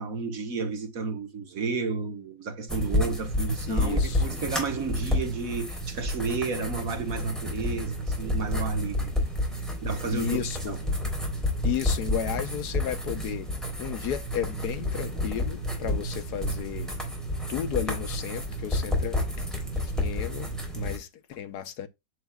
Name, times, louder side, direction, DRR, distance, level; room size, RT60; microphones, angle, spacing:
voice 1, 0.0-9.1 9.8-10.4 10.7-10.8, right 4 dB, 55° right, 1.6 m, -31 dB
sound 1, 2.7-21.0, left 1 dB, ahead, 3.4 m, -30 dB
voice 2, 3.7-4.2 10.1-10.8 11.6-13.5 13.8-16.9 17.5-19.2 19.8-21.9, left 10 dB, 70° left, 1.3 m, -33 dB
8.2 x 7.3 x 2.2 m
omnidirectional pair, 1.8 m